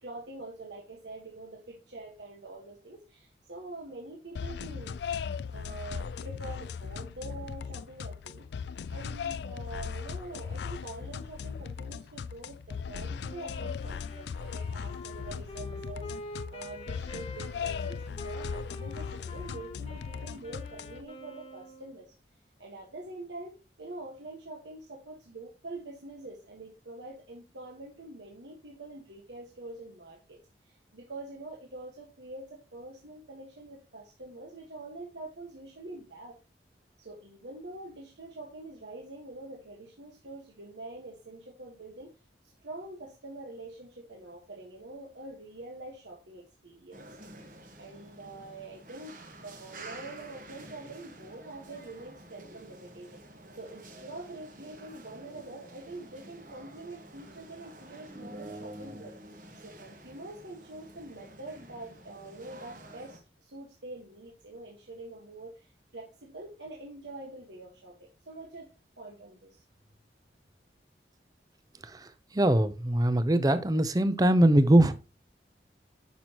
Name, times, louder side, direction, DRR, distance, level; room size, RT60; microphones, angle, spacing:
voice 1, 0.0-5.0 5.5-22.1 22.6-30.4 30.6-36.4 37.0-42.1 42.6-47.3 47.8-49.1 49.4-53.2 53.5-59.1 59.6-68.7 69.0-69.6, right 2 dB, 85° right, 1.5 m, -45 dB
sound 1, 4.3-21.0, left 6 dB, 70° left, 0.3 m, -38 dB
Wind instrument woodwind instrument, 13.2-22.1, left 1 dB, 35° left, 1.3 m, -45 dB
sound 2, 46.9-63.2, right 1 dB, 50° right, 1.4 m, -49 dB
voice 2, 71.8-74.9, right 1 dB, 20° right, 0.5 m, -22 dB
9.3 x 6.1 x 2.9 m
head